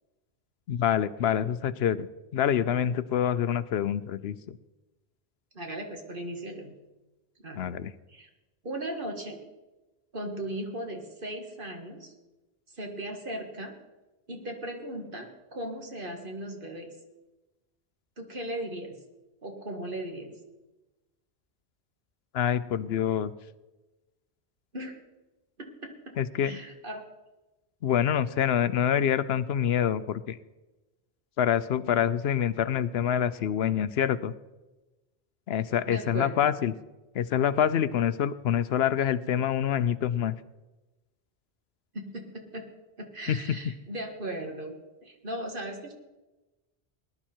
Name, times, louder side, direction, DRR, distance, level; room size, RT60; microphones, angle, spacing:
voice 1, 0.7-2.1 2.3-4.6 7.6-7.9 22.3-23.3 26.2-26.6 27.8-30.4 31.4-34.3 35.5-36.7 37.1-40.3 43.3-43.4, left 9 dB, 75° left, 15 dB, 0.8 m, -26 dB
voice 2, 5.5-6.7 7.4-7.7 8.1-8.3 8.6-9.4 10.1-12.1 12.7-13.8 14.3-16.9 18.2-19.0 19.4-20.3 24.7-25.0 25.6-26.1 26.4-27.0 35.9-36.5 41.9-42.6 43.0-44.8 45.0-45.9, right 1 dB, 55° right, 3 dB, 2.0 m, -37 dB
20.0 x 11.0 x 4.5 m, 1.1 s
omnidirectional pair, 1.1 m